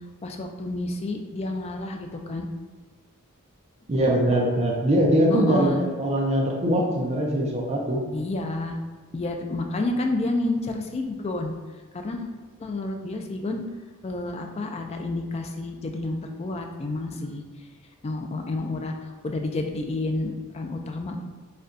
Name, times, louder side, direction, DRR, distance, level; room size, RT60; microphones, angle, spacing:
voice 1, 0.2-2.5 5.3-5.8 8.1-8.8 9.1-11.5 11.9-12.3 12.6-13.6 14.0-17.4 18.0-18.9 19.2-21.2, left 2 dB, 25° left, 3 dB, 0.3 m, -29 dB
voice 2, 3.9-8.0, right 1 dB, 30° right, -1 dB, 0.5 m, -22 dB
6.4 x 2.2 x 2.5 m, 1.4 s
head